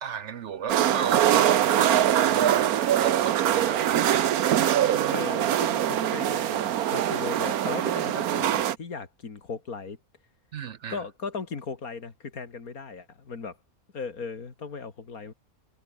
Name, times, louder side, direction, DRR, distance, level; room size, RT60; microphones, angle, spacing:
voice 1, 0.0-4.3 10.5-11.0, right 8 dB, 60° right, 0.9 m, -34 dB
sound 1, 0.7-8.8, right 11 dB, 80° right, 1.4 m, -23 dB
voice 2, 5.1-10.0 10.9-13.6 13.9-15.3, left 5 dB, 75° left, 2.8 m, -37 dB
omnidirectional pair, 1.5 m